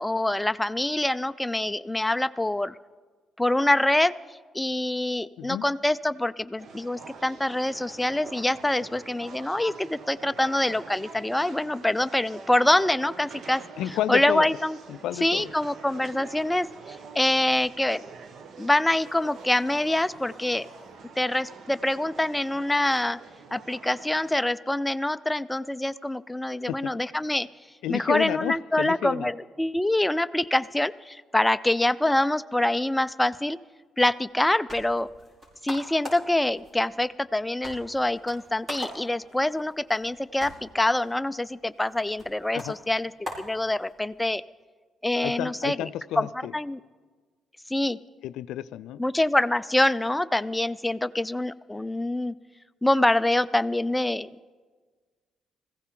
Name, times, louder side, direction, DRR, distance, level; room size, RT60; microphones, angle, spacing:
voice 1, 0.0-2.8 3.4-4.2 4.5-13.6 14.1-14.8 15.2-18.0 18.6-20.7 21.2-23.2 23.5-27.5 27.9-33.6 34.0-35.1 35.6-43.1 43.4-44.4 45.0-45.9 46.2-46.3 46.5-46.8 47.7-48.0 49.0-52.3 52.8-54.3, left 1 dB, 10° left, 13 dB, 0.4 m, -25 dB
sound 1, 6.6-24.4, right 5 dB, 65° right, 1.1 m, -46 dB
voice 2, 13.8-14.5 14.9-15.5 26.7-26.8 27.8-29.3 42.5-42.7 45.2-46.5 48.2-49.0, left 12 dB, 85° left, 15 dB, 0.3 m, -31 dB
sound 2, 18.9-21.0, right 2 dB, 90° right, 3.9 m, -52 dB
sound 3, 34.3-44.2, equal, 35° right, 5.3 m, -43 dB
20.5 x 15.0 x 3.8 m, 1.4 s
cardioid pair, 90°, 0 cm